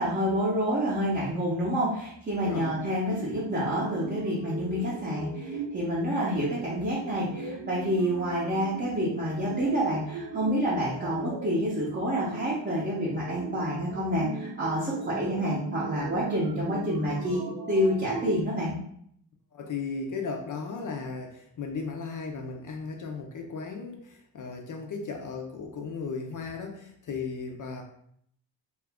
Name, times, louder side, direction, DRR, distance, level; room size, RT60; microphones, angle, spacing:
voice 1, 0.0-18.8, equal, 25° right, -8 dB, 0.6 m, -28 dB
sound 1, 2.4-18.4, right 4 dB, 65° right, 0.6 m, -39 dB
voice 2, 19.5-27.8, left 4 dB, 45° left, 3 dB, 0.4 m, -36 dB
2.8 x 2.4 x 3.4 m, 0.68 s
wide cardioid pair, 155°, 45 cm